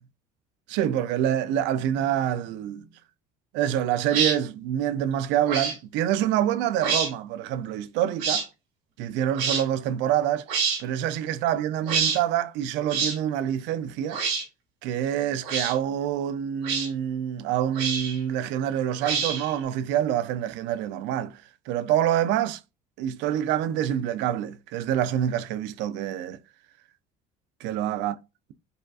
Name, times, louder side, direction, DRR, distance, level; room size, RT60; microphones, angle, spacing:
voice 1, 0.7-2.8 3.5-8.5 9.0-10.5 10.8-14.2 14.8-22.6 23.0-26.4 27.6-28.1, right 10 dB, 70° right, 0.4 m, -26 dB
sound 1, 4.1-4.4 5.4-5.8 6.8-7.1 8.2-8.4 9.4-9.6 10.5-10.8 11.8-12.2 12.9-13.2 14.1-14.4 15.4-15.7 16.6-16.9 17.7-18.2 19.0-19.5, right 6 dB, 90° right, 2.2 m, -26 dB
4.8 x 2.3 x 2.3 m
cardioid pair, 160°, 19 cm